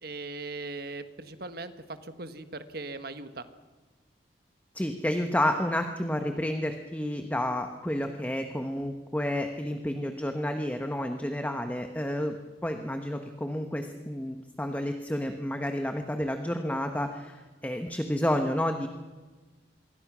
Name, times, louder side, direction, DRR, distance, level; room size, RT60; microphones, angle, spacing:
voice 1, 0.0-3.5, right 3 dB, 55° right, 10 dB, 1.4 m, -39 dB
voice 2, 4.7-12.4 12.6-18.9, left 1 dB, 10° left, 6 dB, 1.1 m, -30 dB
26.0 x 23.0 x 6.2 m, 1.3 s
head